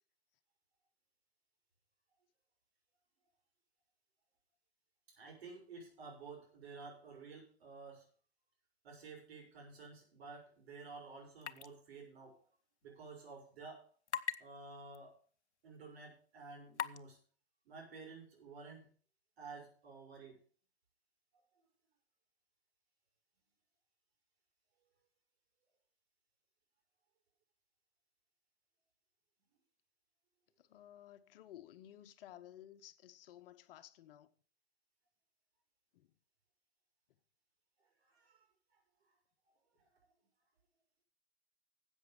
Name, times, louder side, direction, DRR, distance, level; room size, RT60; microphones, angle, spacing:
voice 1, 5.1-8.0 8.8-12.4 12.8-13.8 14.4-15.2 15.6-17.2 17.6-18.9 19.4-20.4 38.0-38.5, right 4 dB, 65° right, 6.5 m, -52 dB
sound 1, 11.4-11.7 12.0-12.1 14.1-14.4 14.9-15.0 15.7-15.8 16.7-17.0, left 9 dB, 85° left, 0.8 m, -38 dB
voice 2, 30.6-34.3 35.9-36.1, left 12 dB, 55° left, 1.1 m, -56 dB
13.5 x 8.3 x 5.1 m
hypercardioid pair, 115°, 33 cm